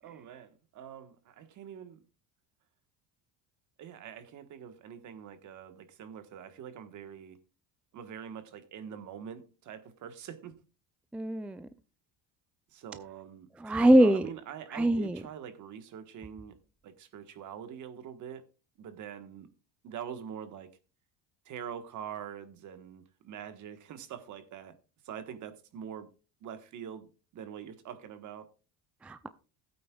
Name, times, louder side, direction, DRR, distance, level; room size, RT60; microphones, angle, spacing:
voice 1, 0.0-2.0 3.8-7.4 7.9-10.5 12.7-13.5 13.8-16.6 16.8-18.5 18.8-19.5 19.8-20.7 21.4-24.8 25.0-26.1 26.4-28.5, right 8 dB, 55° right, 1.4 m, -44 dB
voice 2, 11.1-11.7 13.6-14.3 14.7-15.2 29.0-29.3, right 1 dB, 5° right, 0.4 m, -23 dB
16.0 x 8.6 x 2.4 m
cardioid pair, 110°, 37 cm